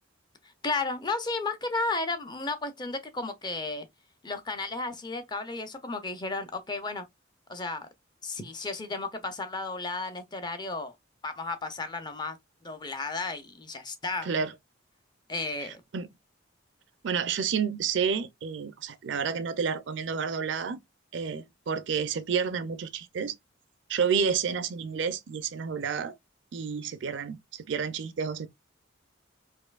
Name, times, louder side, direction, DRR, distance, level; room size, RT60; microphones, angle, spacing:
voice 1, 0.6-3.9 4.2-7.1 7.5-7.9 8.2-10.9 11.2-12.4 12.6-14.3 15.3-15.8, left 3 dB, 20° left, 0.5 m, -33 dB
voice 2, 15.6-16.1 17.0-20.8 21.1-23.4 23.9-26.1 26.5-28.5, right 6 dB, 65° right, 0.4 m, -30 dB
4.2 x 2.6 x 2.3 m
head